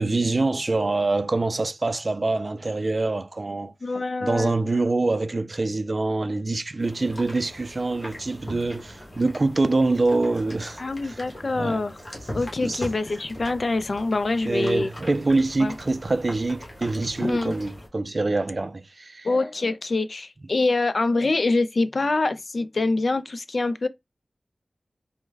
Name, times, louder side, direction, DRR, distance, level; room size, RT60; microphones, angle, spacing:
voice 1, 0.0-3.7 4.2-11.2 11.5-11.8 12.6-12.8 14.5-19.3, right 2 dB, 55° right, 0.3 m, -25 dB
voice 2, 3.8-4.5 10.8-12.0 12.3-14.9 15.6-15.7 17.2-17.5 19.2-23.9, left 3 dB, 65° left, 0.3 m, -25 dB
sound 1, 6.8-17.9, left 1 dB, 45° left, 1.2 m, -40 dB
3.2 x 2.1 x 3.3 m
wide cardioid pair, 55°, 0 cm